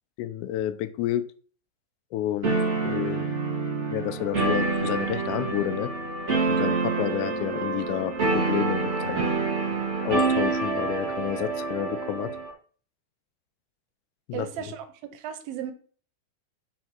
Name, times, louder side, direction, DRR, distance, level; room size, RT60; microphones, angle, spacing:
voice 1, 0.2-1.3 2.1-2.5 2.8-3.3 3.9-5.9 6.5-9.3 10.1-12.4 14.3-14.7, left 12 dB, 90° left, 10 dB, 1.7 m, -30 dB
sound 1, 2.4-12.5, right 3 dB, 50° right, 0.8 m, -27 dB
voice 2, 14.3-14.8 15.1-15.7, right 10 dB, 85° right, 9 dB, 2.7 m, -35 dB
5.6 x 4.4 x 6.0 m, 0.43 s
omnidirectional pair, 4.2 m